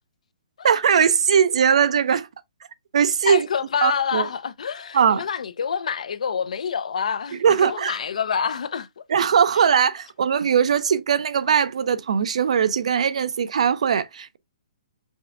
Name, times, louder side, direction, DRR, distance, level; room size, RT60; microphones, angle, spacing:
voice 1, 0.6-2.3 2.9-3.5 3.8-4.3 4.9-5.2 7.4-8.0 9.1-14.4, right 7 dB, 60° right, 0.6 m, -20 dB
voice 2, 3.3-8.9, left 7 dB, 70° left, 0.6 m, -27 dB
5.4 x 2.3 x 3.5 m
hypercardioid pair, 170°, 4 cm